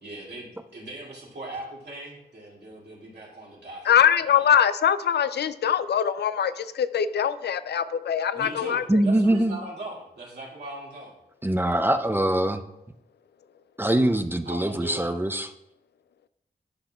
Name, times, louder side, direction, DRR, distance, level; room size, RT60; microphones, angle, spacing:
voice 1, 0.0-4.0 4.3-4.5 8.3-11.1 14.5-15.1, right 2 dB, 85° right, -4 dB, 2.3 m, -39 dB
voice 2, 3.9-8.8, left 9 dB, 85° left, 13 dB, 0.4 m, -22 dB
voice 3, 8.9-9.6 11.4-12.6 13.8-15.5, right 1 dB, 10° right, 9 dB, 0.5 m, -23 dB
11.5 x 5.5 x 2.3 m, 0.82 s
cardioid pair, 55°, 17 cm